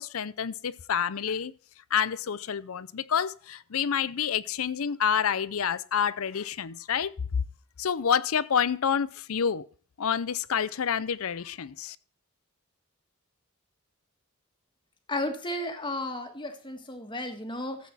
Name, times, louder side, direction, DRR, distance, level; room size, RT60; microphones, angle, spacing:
voice 1, 0.0-1.5 1.9-7.4 7.8-9.6 10.0-12.0, left 7 dB, 80° left, 0.6 m, -28 dB
voice 2, 15.1-17.9, left 1 dB, 20° left, 1.7 m, -33 dB
14.5 x 8.3 x 4.2 m
head